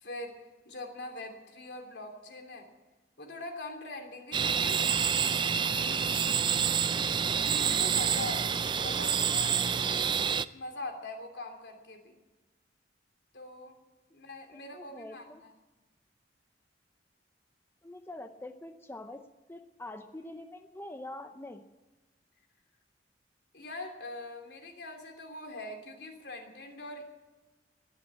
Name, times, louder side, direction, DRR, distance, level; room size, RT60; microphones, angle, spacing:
voice 1, 0.0-2.7 3.2-4.8 5.3-5.5 5.8-6.3 7.4-9.7 10.5-12.1 13.3-13.8 14.1-15.3 23.5-27.0, left 2 dB, 70° left, 4 dB, 3.0 m, -42 dB
sound 1, 4.3-10.4, right 7 dB, 25° right, 0.4 m, -28 dB
voice 2, 14.5-15.4 17.8-19.2 19.5-21.6, left 1 dB, 15° left, 7 dB, 0.7 m, -44 dB
21.0 x 8.0 x 8.3 m, 1.1 s
head